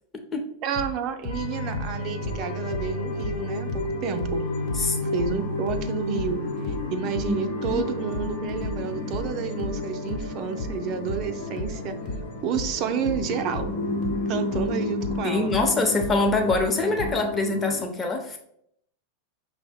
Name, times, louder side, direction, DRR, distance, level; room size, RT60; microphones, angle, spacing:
voice 1, 0.6-4.5 5.1-12.0 12.4-13.8 14.3-15.5, right 7 dB, 45° right, 8 dB, 0.5 m, -30 dB
sound 1, 0.7-3.9 4.2-17.2, left 1 dB, 50° left, 1.0 m, -34 dB
sound 2, 1.3-17.8, left 2 dB, 80° left, 0.8 m, -31 dB
voice 2, 15.2-18.4, left 3 dB, 20° left, 3 dB, 0.8 m, -24 dB
5.5 x 2.1 x 3.5 m, 0.71 s
hypercardioid pair, 100°, 0 cm